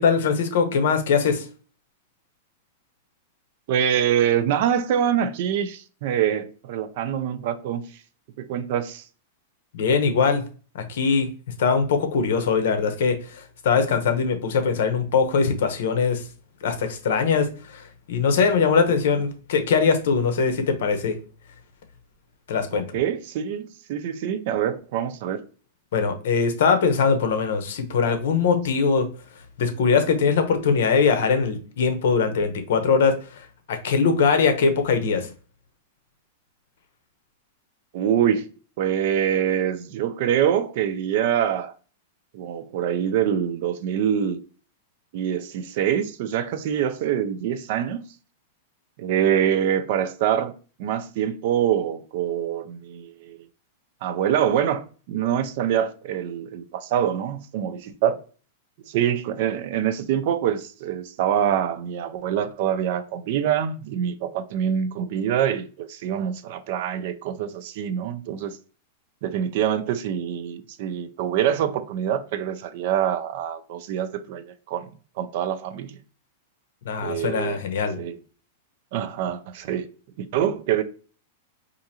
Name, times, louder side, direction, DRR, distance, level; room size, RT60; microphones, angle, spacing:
voice 1, 0.0-1.5 9.7-10.4 10.7-11.3 11.6-16.2 16.6-21.2 22.5-22.8 25.9-29.1 29.6-35.3 76.9-78.0, left 5 dB, 65° left, 0.8 m, -21 dB
voice 2, 3.7-7.8 8.4-9.0 22.7-25.4 37.9-38.5 38.8-41.7 42.3-44.4 45.1-48.0 49.0-50.5 50.8-53.4 54.0-58.2 58.9-68.6 69.2-76.0 77.0-77.6 78.0-78.1 78.9-79.9 80.2-80.8, right 9 dB, 45° right, 0.4 m, -25 dB
4.6 x 2.5 x 2.8 m
supercardioid pair, 170°, 0 cm